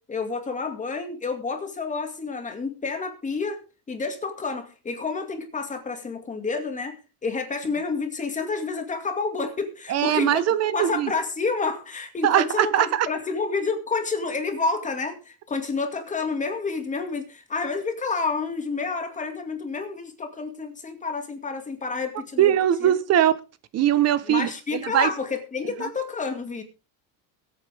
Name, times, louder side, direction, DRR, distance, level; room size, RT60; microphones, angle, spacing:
voice 1, 0.0-3.6 3.9-22.5 22.8-23.0 24.2-26.6, left 4 dB, 20° left, 2.3 m, -29 dB
voice 2, 9.9-11.1 12.2-13.1 22.4-23.4 23.7-25.1, right 11 dB, 40° right, 1.1 m, -21 dB
22.0 x 8.9 x 3.5 m
cardioid pair, 150°, 37 cm